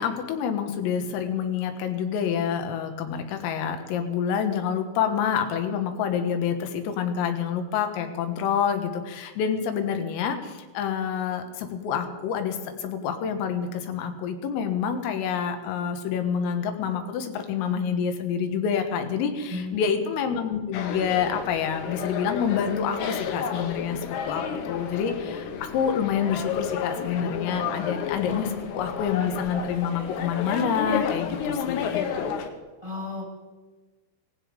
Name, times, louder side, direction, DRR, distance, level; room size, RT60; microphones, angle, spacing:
voice 1, 0.0-32.0, left 7 dB, 85° left, 6 dB, 4.2 m, -27 dB
voice 2, 19.5-19.8 32.8-33.4, left 3 dB, 10° right, 0 dB, 1.4 m, -34 dB
sound 1, 20.7-32.5, left 7 dB, 65° left, 3.1 m, -31 dB
18.0 x 15.5 x 5.2 m, 1.3 s
omnidirectional pair, 5.9 m